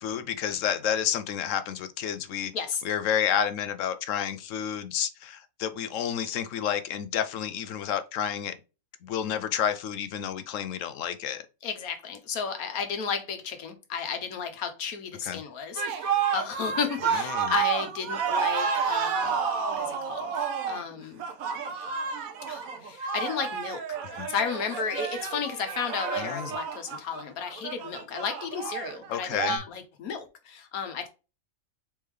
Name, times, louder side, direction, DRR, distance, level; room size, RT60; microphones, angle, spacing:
voice 1, 0.0-2.5 2.8-8.5 9.0-11.4 15.2-15.4 17.2-17.5 24.2-24.3 26.1-26.5 29.1-29.6, left 9 dB, 70° left, 0.9 m, -30 dB
voice 2, 11.6-21.2 22.5-31.1, left 6 dB, 90° left, 1.4 m, -33 dB
sound 1, 15.8-29.6, right 6 dB, 80° right, 1.3 m, -30 dB
4.3 x 3.5 x 3.2 m
omnidirectional pair, 1.5 m